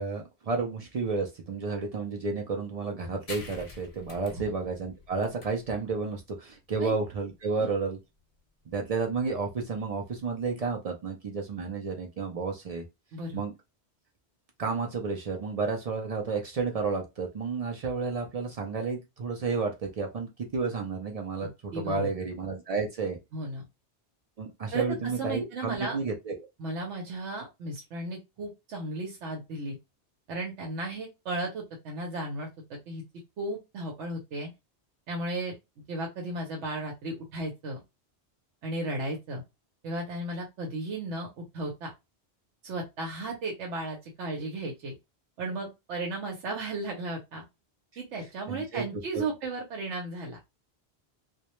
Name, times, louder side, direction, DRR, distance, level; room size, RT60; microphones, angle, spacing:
voice 1, 0.0-8.0 8.7-12.8 13.3-13.5 14.6-23.2 24.4-26.4 48.5-48.9 49.1-49.2, right 4 dB, 60° right, 0.4 m, -31 dB
sound 1, 3.3-10.4, left 3 dB, 50° left, 0.5 m, -49 dB
voice 2, 13.1-13.4 21.4-22.1 23.3-23.6 24.7-26.0 26.6-29.8 30.3-33.0 33.4-34.5 35.1-35.5 35.9-37.8 38.6-39.4 39.8-41.9 42.6-44.9 45.4-47.4 48.0-50.4, right 2 dB, 90° right, 0.9 m, -35 dB
2.2 x 2.1 x 2.9 m
omnidirectional pair, 1.1 m